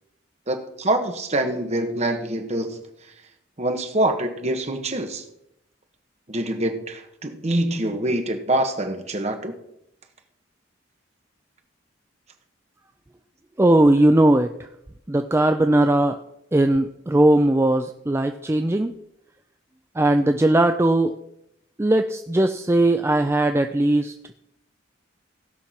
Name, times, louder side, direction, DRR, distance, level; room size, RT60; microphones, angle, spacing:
voice 1, 0.5-2.8 3.6-5.2 6.3-9.5, right 1 dB, 35° right, 5 dB, 1.4 m, -25 dB
voice 2, 13.6-14.5 15.1-16.2 16.5-18.9 20.0-21.1 21.8-24.1, right 1 dB, 15° right, 7 dB, 0.4 m, -19 dB
16.0 x 5.9 x 5.8 m, 0.81 s
head